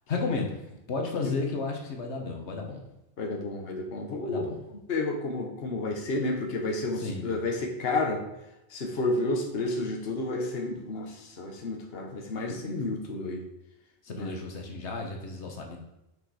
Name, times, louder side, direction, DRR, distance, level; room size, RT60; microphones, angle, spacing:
voice 1, 0.1-2.8 4.2-4.6 7.0-7.4 14.0-15.8, left 3 dB, 85° left, 2 dB, 1.5 m, -33 dB
voice 2, 3.2-4.5 4.9-8.2 8.7-13.4 14.2-14.3, left 2 dB, 65° left, 1 dB, 1.3 m, -31 dB
6.5 x 5.3 x 4.8 m, 0.93 s
omnidirectional pair, 1.1 m